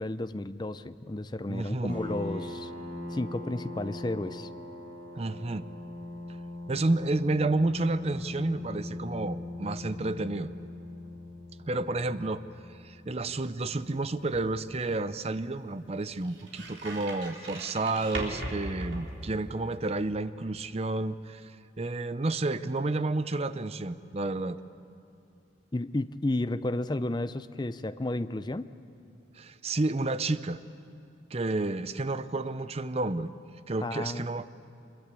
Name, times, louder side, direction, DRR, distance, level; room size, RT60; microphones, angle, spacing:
voice 1, 0.0-2.7 3.1-4.5 25.7-28.7 33.8-34.3, left 2 dB, 25° left, 12 dB, 0.5 m, -32 dB
voice 2, 1.5-1.9 5.1-5.6 6.7-10.5 11.6-12.4 12.8-21.5 21.8-24.6 29.4-30.6 31.3-33.3 33.7-34.5, right 2 dB, 35° right, 13 dB, 0.6 m, -30 dB
sound 1, 1.9-15.2, left 1 dB, 50° right, 5.0 m, -41 dB
sound 2, 13.5-19.8, right 1 dB, 85° right, 3.9 m, -41 dB
25.5 x 22.0 x 8.3 m, 2.6 s
head